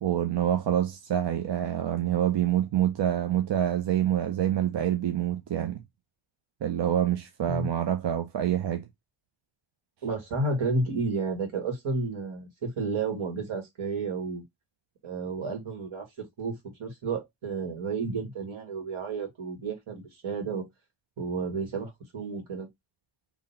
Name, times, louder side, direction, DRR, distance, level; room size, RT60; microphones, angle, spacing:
voice 1, 0.0-5.8 6.6-8.8, right 11 dB, 60° right, 0.6 m, -26 dB
voice 2, 10.0-14.4 15.0-16.5 16.8-20.6 21.2-22.7, right 3 dB, 75° right, 2.2 m, -31 dB
3.9 x 3.0 x 4.1 m
wide cardioid pair, 170°, 49 cm